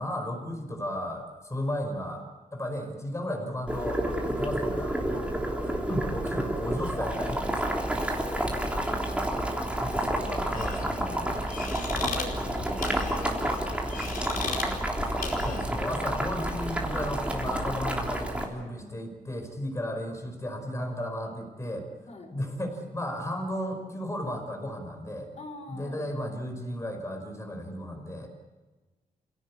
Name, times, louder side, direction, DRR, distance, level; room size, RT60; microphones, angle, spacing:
voice 1, 0.0-2.2 2.5-4.0 4.3-5.0 5.6-7.7 9.6-11.2 15.4-21.9 22.3-25.3 25.7-28.3, left 1 dB, 20° left, 5 dB, 5.0 m, -34 dB
Boiling, 3.7-18.4, right 1 dB, 10° right, 3.5 m, -30 dB
voice 2, 4.2-4.5 5.1-5.4 7.8-8.5 9.8-10.4 10.8-11.4 11.8-12.8 13.1-13.8 14.2-15.4 18.6-19.0 22.1-22.3 25.4-26.0, left 3 dB, 50° left, 5 dB, 5.0 m, -45 dB
sound 1, 10.5-15.8, left 4 dB, 75° left, 4.8 m, -37 dB
28.5 x 17.5 x 8.5 m, 1.2 s
wide cardioid pair, 135°, 15 cm